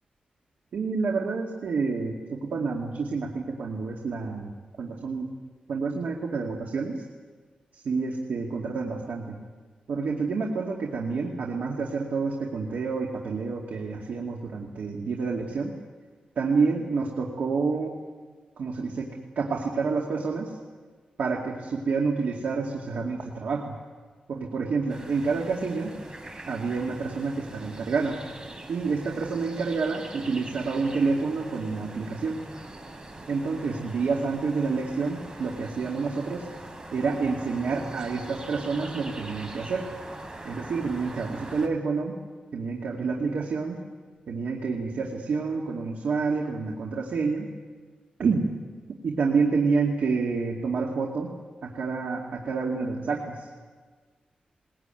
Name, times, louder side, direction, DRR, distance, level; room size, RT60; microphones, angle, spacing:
voice 1, 0.7-4.5 4.8-5.3 5.7-7.0 7.7-9.4 9.9-15.7 16.4-18.0 18.6-19.1 19.4-20.5 21.2-23.7 24.3-25.9 26.5-28.2 28.7-32.4 33.3-36.5 36.9-39.9 40.4-42.1 42.5-43.8 44.3-47.5 48.2-48.5 49.0-51.3 51.6-53.5, right 4 dB, 90° right, 0 dB, 2.5 m, -28 dB
sound 1, 24.9-41.7, right 2 dB, 30° right, 3.9 m, -42 dB
21.5 x 21.0 x 9.2 m, 1.5 s
wide cardioid pair, 105°, 3 cm